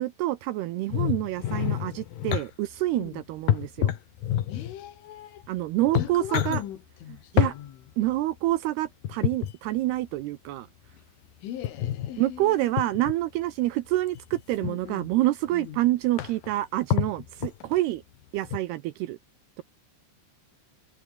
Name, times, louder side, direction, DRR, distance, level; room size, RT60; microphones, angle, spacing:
voice 1, 0.0-3.9 5.5-6.6 7.3-7.6 8.0-10.7 12.2-18.0 18.3-19.2, right 16 dB, 80° right, 2.4 m, -27 dB
sound 1, 0.9-2.5 3.5-4.7 5.4-5.5 5.8-6.6 7.4-7.6 9.0-9.5 11.6-12.1 12.8-13.1 14.1-14.7 15.5-15.6 15.8-15.9 16.2-16.5 16.9-17.8 18.4-18.6, left 11 dB, 60° left, 2.8 m, -27 dB
voice 2, 4.5-5.5 5.9-7.8 11.4-12.9 14.6-15.1 15.5-15.8, left 11 dB, 80° left, 4.9 m, -40 dB
omnidirectional pair, 5.6 m